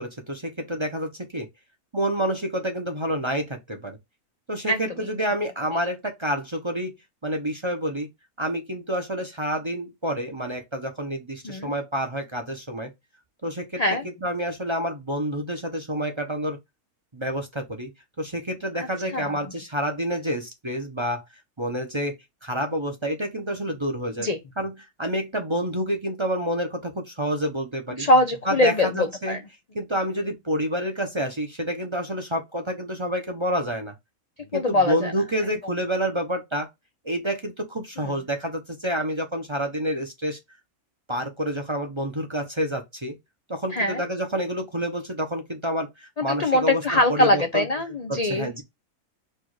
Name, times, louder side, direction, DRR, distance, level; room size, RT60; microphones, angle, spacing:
voice 1, 0.0-1.5 1.9-4.0 4.5-6.9 7.2-8.1 8.4-12.9 13.4-13.8 14.2-16.6 17.1-17.9 18.2-21.2 21.6-22.1 22.4-24.3 24.6-28.1 28.5-29.4 29.7-33.9 34.5-36.7 37.0-40.4 41.1-43.1 43.5-47.6 48.1-48.6, equal, 25° right, 0.8 m, -28 dB
voice 2, 11.4-11.8 13.8-14.0 18.7-18.9 19.1-19.4 24.2-24.4 28.0-29.4 34.5-35.1 38.0-38.1 43.7-44.0 46.2-48.5, left 1 dB, 45° left, 0.5 m, -22 dB
4.6 x 2.5 x 4.7 m
omnidirectional pair, 1.5 m